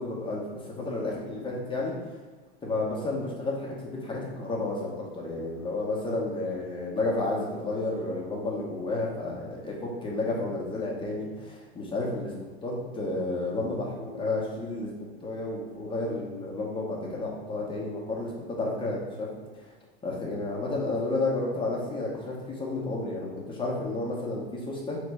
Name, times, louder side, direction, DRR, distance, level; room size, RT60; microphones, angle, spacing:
voice 1, 0.0-2.1 2.6-12.3 12.6-19.3 19.5-19.7 20.0-25.0, left 2 dB, 15° left, -3 dB, 1.2 m, -31 dB
3.2 x 3.1 x 4.7 m, 1.3 s
hypercardioid pair, 110°, 32 cm